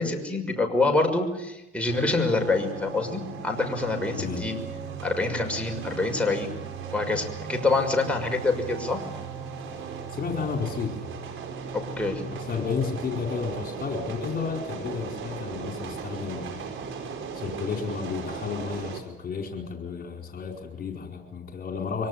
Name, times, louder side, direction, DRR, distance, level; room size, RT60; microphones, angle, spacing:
voice 1, 0.0-4.6 5.0-6.5 6.9-9.0 11.7-12.2, left 3 dB, 5° left, 1 dB, 6.0 m, -26 dB
sound 1, 1.9-19.0, right 6 dB, 80° right, 4.7 m, -37 dB
voice 2, 10.1-11.2 12.3-16.6 17.3-22.1, left 5 dB, 50° left, 3 dB, 4.8 m, -32 dB
24.5 x 18.5 x 9.7 m, 0.90 s
cardioid pair, 90°, 20 cm